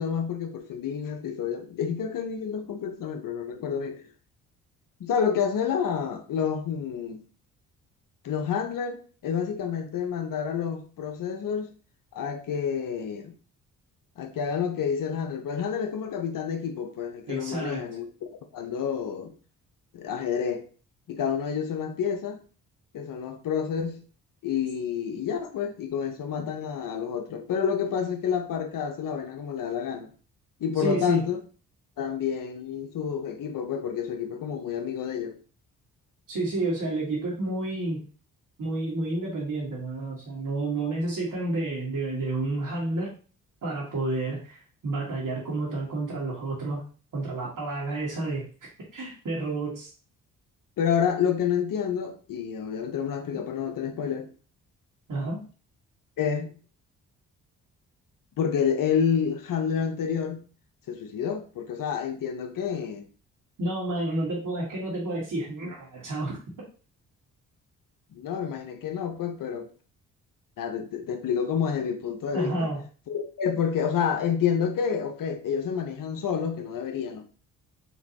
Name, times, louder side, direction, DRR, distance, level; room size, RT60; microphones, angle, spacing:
voice 1, 0.0-4.1 5.0-7.2 8.2-11.7 12.1-13.3 14.2-19.3 19.9-20.6 21.1-22.4 22.9-24.0 24.4-30.1 30.6-31.4 32.0-35.4 50.8-54.3 56.2-56.5 58.4-60.4 60.9-63.0 68.1-69.7 70.6-72.7 73.1-77.3, left 7 dB, 55° left, 0.8 m, -29 dB
voice 2, 17.3-17.8 30.8-31.2 36.3-38.1 38.6-43.1 43.6-46.8 47.1-48.5 48.9-49.9 55.1-55.4 63.6-66.4 72.3-72.8, right 2 dB, 50° right, 1.7 m, -30 dB
4.0 x 3.0 x 2.9 m
hypercardioid pair, 45°, 40 cm